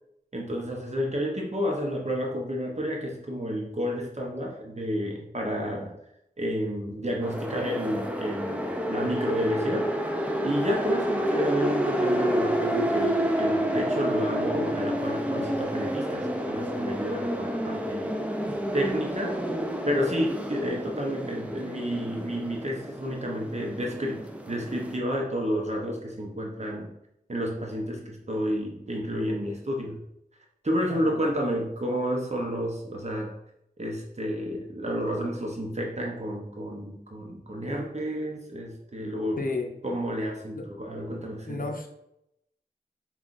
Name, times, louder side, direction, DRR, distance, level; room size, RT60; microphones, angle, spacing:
voice 1, 0.3-5.9 6.4-9.9 10.4-18.1 18.7-19.4 19.9-24.2 24.5-26.9 27.3-30.0 30.6-33.3 33.8-39.4 39.8-41.6, equal, 45° right, -1 dB, 0.7 m, -30 dB
sound 1, 7.2-25.0, equal, 10° right, 0.5 m, -29 dB
voice 2, 30.9-31.3 39.4-39.7 40.6-40.7 41.5-41.9, left 3 dB, 60° left, 2 dB, 0.7 m, -32 dB
5.5 x 2.4 x 2.5 m, 0.80 s
wide cardioid pair, 40°, 16 cm